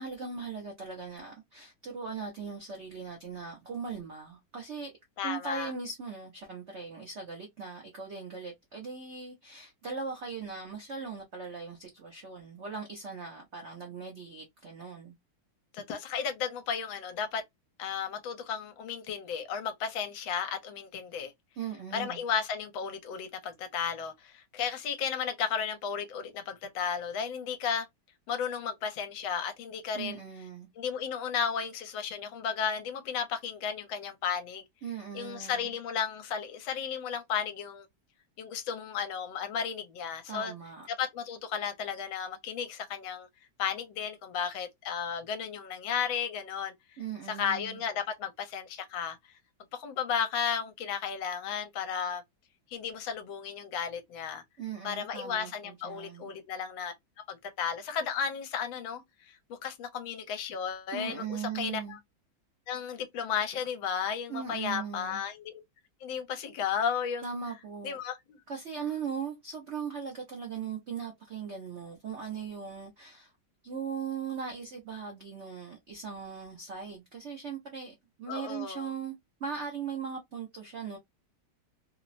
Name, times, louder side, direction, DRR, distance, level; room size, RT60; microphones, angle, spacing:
voice 1, 0.0-4.9 5.2-15.1 21.6-22.2 29.9-30.7 34.8-35.7 40.3-40.9 47.0-47.8 54.6-56.3 60.9-62.0 64.3-65.2 67.2-68.0 68.5-73.3 73.6-79.1 79.4-81.0, right 6 dB, 85° right, 0.6 m, -39 dB
voice 2, 5.2-5.7 15.7-17.4 17.8-21.3 21.9-27.9 28.3-30.2 30.8-34.6 35.1-37.9 38.4-40.5 40.9-43.3 43.6-46.7 47.3-49.2 49.7-52.2 52.7-54.4 54.8-56.9 57.3-61.2 61.5-62.0 62.7-65.6 66.0-67.3 67.8-68.2 78.3-78.9, left 7 dB, 75° left, 1.4 m, -34 dB
3.4 x 2.0 x 2.4 m
omnidirectional pair, 2.2 m